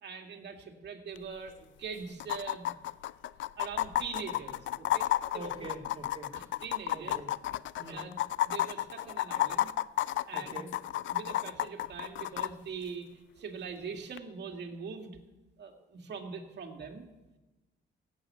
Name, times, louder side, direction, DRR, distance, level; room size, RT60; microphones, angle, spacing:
voice 1, 0.0-2.7 3.6-5.1 5.3-5.7 6.3-7.2 7.9-8.2 8.4-9.7 10.3-10.6 11.1-13.1 13.4-15.2 15.6-17.1, right 5 dB, 60° right, 3 dB, 2.2 m, -42 dB
sound 1, 1.2-1.3 1.5-1.6 2.2-12.5 14.2-14.3, left 13 dB, 70° left, 0.4 m, -32 dB
voice 2, 5.3-6.3 6.9-7.3 7.8-8.1 10.3-10.7, right 2 dB, 30° right, 0 dB, 2.8 m, -44 dB
16.0 x 8.3 x 7.6 m, 1.1 s
cardioid pair, 90°, 20 cm